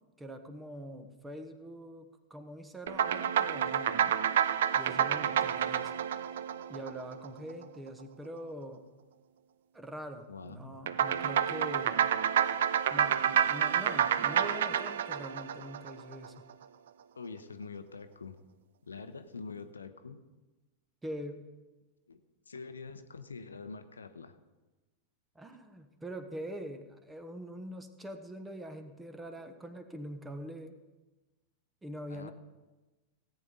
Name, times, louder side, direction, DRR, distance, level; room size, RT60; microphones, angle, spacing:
voice 1, 0.2-4.1 4.7-5.9 6.7-8.9 9.7-12.1 12.9-16.5 21.0-21.5 25.3-30.8 31.8-32.3, equal, 10° right, 8 dB, 1.2 m, -44 dB
sound 1, 2.9-7.5 10.9-16.3, right 9 dB, 60° right, 0.5 m, -29 dB
voice 2, 10.3-10.8 17.1-18.4 18.8-20.2 22.1-22.2 22.5-24.4 32.1-32.3, left 4 dB, 75° left, 10 dB, 0.8 m, -45 dB
17.5 x 9.0 x 4.0 m, 1.2 s
figure-of-eight pair, 90°, 0 cm